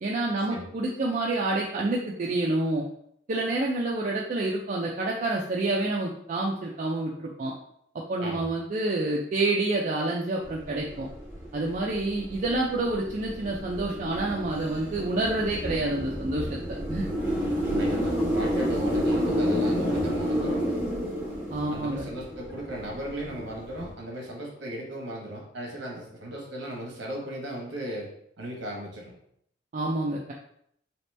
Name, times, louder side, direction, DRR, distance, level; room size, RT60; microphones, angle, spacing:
voice 1, 0.0-2.8 3.3-7.5 8.1-11.1 11.5-17.1 21.5-22.1 29.7-30.3, right 2 dB, 40° right, -3 dB, 0.4 m, -28 dB
sound 1, 10.4-23.9, equal, 5° left, 1.3 m, -30 dB
voice 2, 17.6-20.8 21.6-28.1 28.4-29.2, right 1 dB, 65° right, -1 dB, 1.0 m, -36 dB
2.9 x 2.9 x 3.2 m, 0.70 s
head